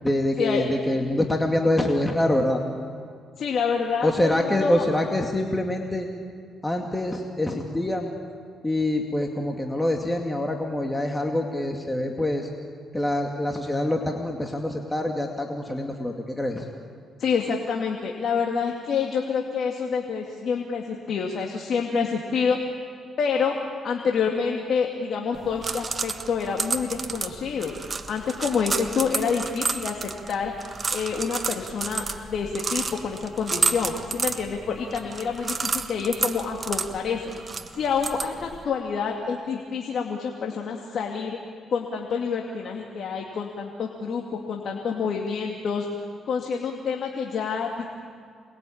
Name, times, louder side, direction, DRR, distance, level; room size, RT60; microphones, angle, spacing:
voice 1, 0.0-2.6 4.0-6.1 6.6-8.1 8.6-12.5 12.9-16.7, left 1 dB, 10° left, 1 dB, 2.3 m, -25 dB
voice 2, 3.4-4.8 17.2-22.6 23.2-23.6 23.8-27.7 28.1-37.3 37.7-41.4 41.7-45.9 46.3-47.9, left 6 dB, 60° left, 1 dB, 2.5 m, -27 dB
sound 1, 25.3-38.7, right 4 dB, 35° right, 1.5 m, -31 dB
28.0 x 21.5 x 8.8 m, 2.2 s
cardioid pair, 90°, 0 cm